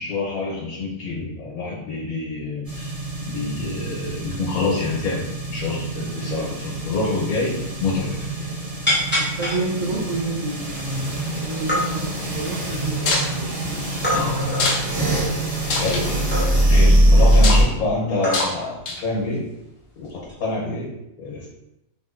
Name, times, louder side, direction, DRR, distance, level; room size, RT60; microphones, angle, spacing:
voice 1, 0.0-2.9 3.2-8.2 14.1-14.7 15.2-15.4 15.8-16.2 16.7-19.5 20.0-21.5, left 3 dB, 80° left, -4 dB, 1.3 m, -27 dB
sound 1, 2.6-17.6, right 1 dB, 25° right, 1.2 m, -23 dB
sound 2, 7.4-7.5 7.7-8.3 8.9-9.6 10.2-10.3 10.7-11.2 11.5-11.8 12.4-13.3 14.0-14.7 16.3-16.8 17.7-17.8 18.2-18.7 19.0-19.2 20.2-20.5, left 1 dB, 15° left, 0.4 m, -25 dB
voice 2, 9.4-13.5, right 3 dB, 70° right, -9 dB, 1.2 m, -29 dB
sound 3, 13.0-13.3 14.5-14.9 15.2-15.3 15.6-16.0 17.3-17.6 18.3-18.5 18.9-19.2, left 3 dB, 65° left, 0.6 m, -23 dB
3.5 x 2.6 x 2.4 m, 0.88 s
omnidirectional pair, 1.5 m